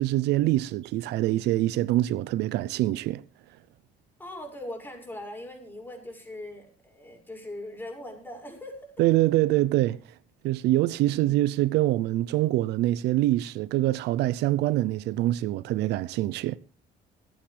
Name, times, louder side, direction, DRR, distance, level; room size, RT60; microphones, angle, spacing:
voice 1, 0.0-3.2 9.0-10.0 10.4-16.6, right 15 dB, 80° right, 0.6 m, -24 dB
voice 2, 4.2-8.9 10.9-11.2, left 1 dB, 10° left, 6.2 m, -40 dB
26.5 x 8.9 x 3.4 m
cardioid pair, 110°, 17 cm